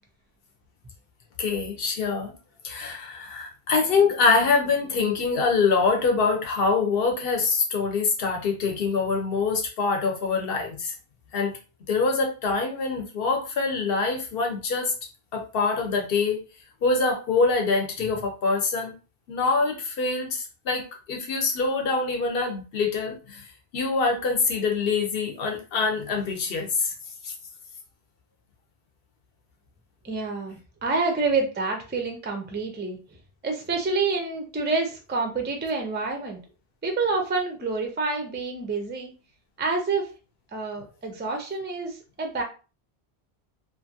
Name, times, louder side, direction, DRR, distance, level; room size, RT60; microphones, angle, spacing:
voice 1, 1.4-2.3 2.6-10.9 11.3-11.6 11.9-14.9 15.3-16.4 16.8-18.9 19.3-23.5 23.7-26.9 27.2-27.3, left 4 dB, 65° left, 2 dB, 0.9 m, -24 dB
voice 2, 30.0-33.2 33.4-36.4 36.8-39.1 39.6-40.1 40.5-42.4, right 3 dB, 20° right, 3 dB, 0.3 m, -28 dB
2.7 x 2.5 x 2.6 m, 0.33 s
omnidirectional pair, 1.1 m